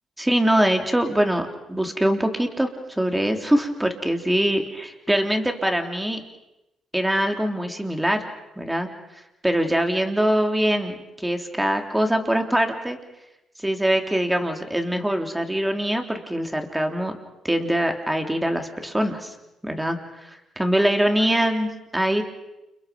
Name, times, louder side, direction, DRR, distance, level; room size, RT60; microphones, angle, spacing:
voice 1, 0.2-6.2 6.9-8.3 8.6-8.9 9.4-13.0 13.6-17.1 17.4-19.3 19.6-22.2, right 1 dB, 10° right, 4 dB, 3.5 m, -23 dB
29.5 x 29.5 x 5.4 m, 0.92 s
cardioid pair, 90°, 0 cm